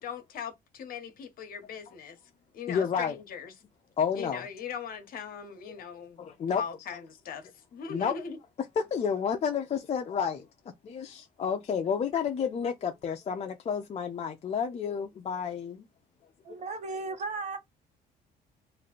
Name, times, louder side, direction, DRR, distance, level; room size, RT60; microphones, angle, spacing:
voice 1, 0.0-2.2 2.5-3.5 4.1-8.4, left 7 dB, 60° left, 1.1 m, -40 dB
voice 2, 2.7-3.1 4.0-4.4 6.2-6.6 7.9-8.1 8.8-10.5 10.8-15.9, left 7 dB, 40° left, 0.6 m, -30 dB
voice 3, 16.4-17.6, right 3 dB, 45° right, 1.2 m, -35 dB
3.2 x 2.5 x 3.8 m
cardioid pair, 110°, 17 cm